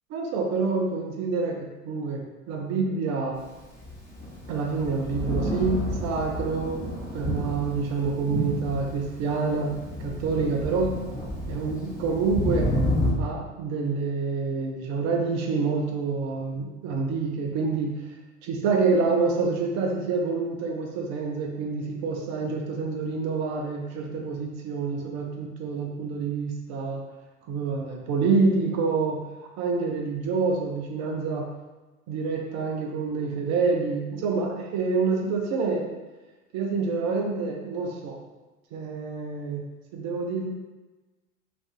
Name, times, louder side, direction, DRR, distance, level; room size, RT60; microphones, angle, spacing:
voice 1, 0.1-3.4 4.5-6.8 7.1-9.7 10.0-10.9 11.5-12.7 13.2-17.9 18.4-27.0 27.5-29.2 29.6-31.5 32.1-35.9 36.5-38.2 38.7-39.6 39.9-40.5, right 4 dB, 40° right, 0 dB, 0.6 m, -27 dB
Thunder, 3.6-13.1, left 1 dB, 10° left, 0.8 m, -30 dB
2.5 x 2.4 x 2.4 m, 1.1 s
hypercardioid pair, 80°, 41 cm